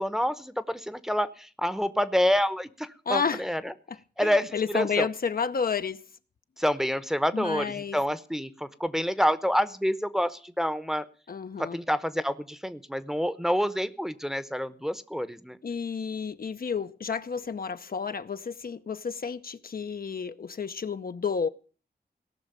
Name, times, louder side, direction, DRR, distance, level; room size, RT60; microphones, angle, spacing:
voice 1, 0.0-3.7 4.2-5.1 6.6-11.1 11.6-15.6, equal, 5° right, 0.9 m, -28 dB
voice 2, 3.1-3.4 4.2-6.0 7.3-8.0 11.3-11.8 15.6-21.5, left 6 dB, 60° left, 0.8 m, -31 dB
17.5 x 6.3 x 9.0 m
wide cardioid pair, 105°, 17 cm